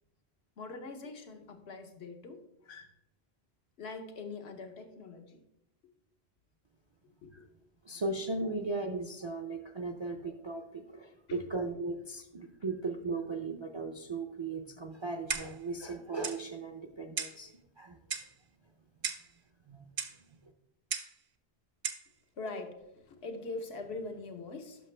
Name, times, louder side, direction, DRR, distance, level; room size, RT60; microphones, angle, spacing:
voice 1, 0.6-2.9 3.8-5.4 7.2-7.4 8.4-8.6 11.3-11.4 22.4-24.9, left 3 dB, 85° left, 5 dB, 1.2 m, -43 dB
voice 2, 7.9-17.5 17.8-18.0 19.7-19.9, right 3 dB, 40° right, 5 dB, 0.4 m, -37 dB
Clock, 15.3-15.7 16.2-16.4 17.2-17.4 18.1-18.4 19.0-19.3 20.0-20.2 20.9-21.2 21.8-22.1, right 6 dB, 60° right, 0.8 m, -36 dB
10.5 x 5.9 x 3.3 m, 0.82 s
omnidirectional pair, 1.1 m